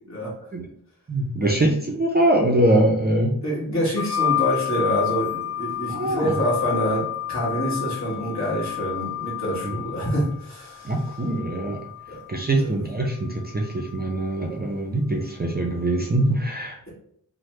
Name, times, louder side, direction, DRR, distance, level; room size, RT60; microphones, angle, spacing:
voice 1, 1.1-3.3 5.9-6.3 9.6-9.8 10.8-11.8 12.3-16.9, right 1 dB, 25° right, 1 dB, 0.4 m, -23 dB
voice 2, 3.4-10.9 12.1-12.2 12.6-12.7, equal, 45° left, -5 dB, 1.4 m, -26 dB
sound 1, 4.0-12.4 13.4-14.2, left 11 dB, 65° left, 0.7 m, -30 dB
3.1 x 2.1 x 3.1 m, 0.66 s
wide cardioid pair, 80°, 38 cm